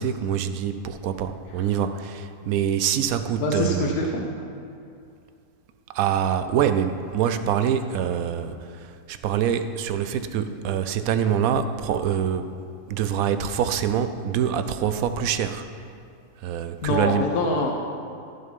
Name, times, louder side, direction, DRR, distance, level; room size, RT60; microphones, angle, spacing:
voice 1, 0.0-4.0 5.9-12.5 12.9-15.6 16.4-17.3, right 8 dB, 70° right, 10 dB, 1.0 m, -25 dB
voice 2, 3.4-4.3 16.8-17.7, left 2 dB, 90° left, 1 dB, 1.4 m, -24 dB
14.5 x 5.8 x 5.4 m, 2.5 s
omnidirectional pair, 1.6 m